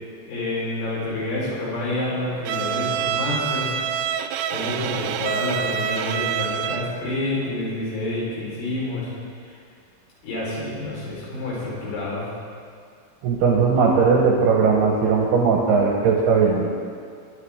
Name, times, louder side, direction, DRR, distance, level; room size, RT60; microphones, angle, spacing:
voice 1, 0.3-4.1 4.5-9.1 9.5-9.6 10.2-12.2, left 2 dB, 70° left, -7 dB, 6.7 m, -28 dB
Bowed string instrument, 2.4-7.0, right 9 dB, 90° right, 2.6 m, -26 dB
voice 2, 13.2-16.7, right 5 dB, 75° right, -2 dB, 2.5 m, -18 dB
22.0 x 11.0 x 3.6 m, 2.2 s
omnidirectional pair, 5.9 m